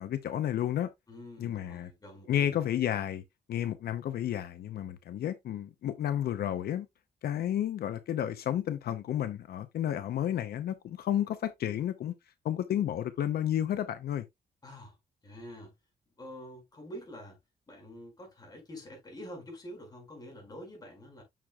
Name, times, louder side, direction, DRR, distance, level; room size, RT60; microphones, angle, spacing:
voice 1, 0.0-0.9 1.4-1.9 2.3-3.2 3.5-6.9 7.2-12.1 12.4-14.2, left 11 dB, 75° left, 0.7 m, -31 dB
voice 2, 1.1-2.6 14.6-15.0 15.2-15.7 16.2-17.4 17.7-21.2, equal, 25° left, 5.1 m, -46 dB
9.0 x 6.5 x 2.3 m
wide cardioid pair, 165°, 16 cm